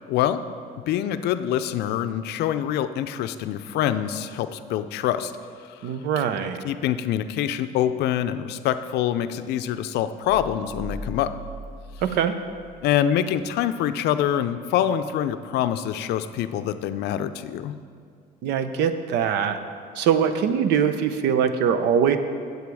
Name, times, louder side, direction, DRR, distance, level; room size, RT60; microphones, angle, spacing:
voice 1, 0.1-0.4 0.9-5.3 6.6-11.3 12.8-17.7, left 10 dB, 75° left, 11 dB, 0.5 m, -25 dB
voice 2, 5.8-6.6 12.0-12.4 18.4-19.6 19.9-22.2, right 7 dB, 85° right, 10 dB, 0.6 m, -22 dB
sound 1, 10.3-12.8 13.2-13.3, left 1 dB, 20° right, 1.3 m, -38 dB
8.7 x 8.0 x 4.7 m, 2.2 s
cardioid pair, 110°, 17 cm